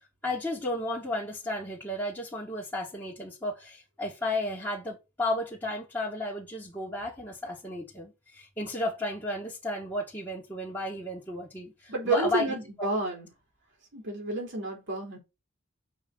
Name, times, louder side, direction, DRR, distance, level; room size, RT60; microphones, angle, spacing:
voice 1, 0.2-12.6, left 1 dB, 10° left, 2.1 m, -33 dB
voice 2, 11.9-13.3 13.9-15.2, right 2 dB, 60° right, 4.3 m, -30 dB
6.4 x 5.7 x 4.3 m
head